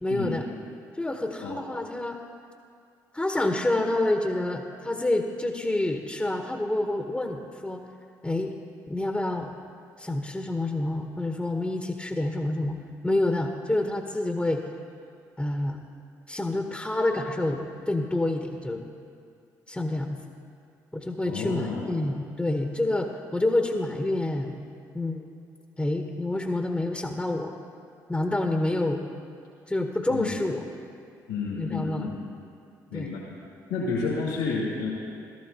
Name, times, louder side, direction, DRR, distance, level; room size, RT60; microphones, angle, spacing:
voice 1, 0.0-0.5 0.9-2.2 3.1-7.8 8.2-8.5 8.9-9.5 10.0-12.8 13.0-14.6 15.4-15.8 16.3-18.9 19.7-20.2 20.9-24.6 24.9-25.3 25.8-27.5 28.1-29.0 29.7-30.7 31.6-32.1 32.9-33.1, left 2 dB, 10° left, 4 dB, 0.9 m, -28 dB
voice 2, 21.2-22.0 30.1-30.4 31.3-32.3 32.9-33.4 33.7-34.9, left 4 dB, 80° left, -6 dB, 2.2 m, -31 dB
16.0 x 13.0 x 2.8 m, 2.4 s
hypercardioid pair, 50°, 9 cm